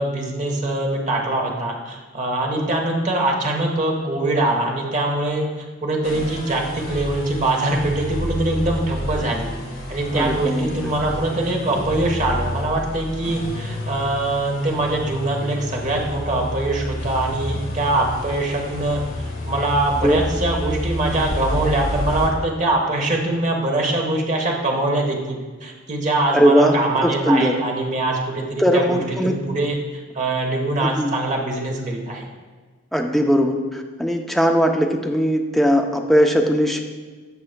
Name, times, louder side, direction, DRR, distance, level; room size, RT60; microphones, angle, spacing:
voice 1, 0.0-9.5 9.9-32.2, right 2 dB, 40° right, 1 dB, 1.2 m, -23 dB
sound 1, 6.0-22.3, left 1 dB, 75° left, 2.0 m, -29 dB
voice 2, 10.1-10.7 20.0-20.2 26.3-26.8 27.0-27.5 28.6-29.4 30.8-31.1 32.9-36.8, equal, ahead, 2 dB, 0.5 m, -19 dB
14.0 x 4.8 x 2.2 m, 1.4 s
head